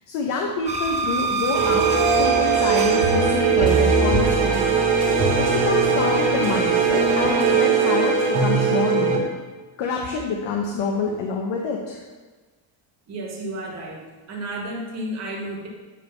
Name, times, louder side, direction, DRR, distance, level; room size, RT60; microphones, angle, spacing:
voice 1, 0.1-1.9 2.2-4.6 5.1-9.2 9.8-12.0, left 4 dB, 60° left, 0 dB, 1.0 m, -27 dB
sound 1, 0.7-7.4, right 4 dB, 15° right, 0.4 m, -30 dB
sound 2, 1.5-9.2, right 5 dB, 90° right, 1.9 m, -20 dB
voice 2, 13.1-15.7, right 1 dB, 30° right, -2 dB, 1.7 m, -32 dB
9.7 x 3.5 x 5.6 m, 1.3 s
cardioid pair, 150°, 50 cm